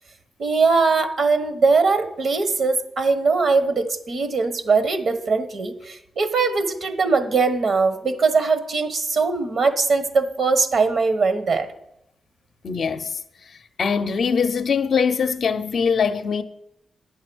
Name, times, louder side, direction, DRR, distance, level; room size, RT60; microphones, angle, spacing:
voice 1, 0.4-11.7, right 4 dB, 70° right, 1.0 m, -21 dB
voice 2, 12.6-13.2 13.5-16.4, left 6 dB, 65° left, 0.5 m, -22 dB
9.0 x 6.5 x 6.1 m
cardioid pair, 65°, 0 cm